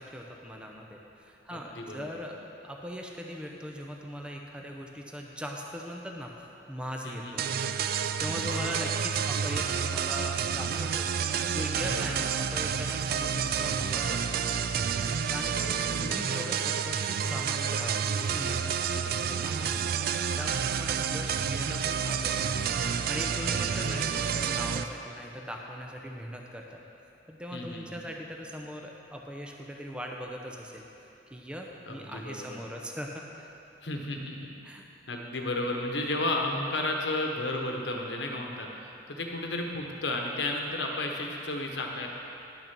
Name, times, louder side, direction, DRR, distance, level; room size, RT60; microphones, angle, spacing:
voice 1, 0.0-2.4 2.6-7.5 8.2-11.1 11.5-14.4 15.3-15.5 16.0-19.9 20.4-26.8 27.3-30.9 31.3-33.5 34.6-34.8, equal, 5° right, 0 dB, 0.6 m, -40 dB
voice 2, 1.5-2.2 7.0-7.6 8.4-8.9 11.8-12.1 15.5-16.3 23.4-24.2 27.5-27.8 31.8-32.6 33.8-34.5 35.1-42.1, left 2 dB, 75° left, 1 dB, 1.1 m, -34 dB
sound 1, 7.4-24.8, right 7 dB, 55° right, 0.3 m, -29 dB
10.5 x 6.4 x 6.0 m, 3.0 s
head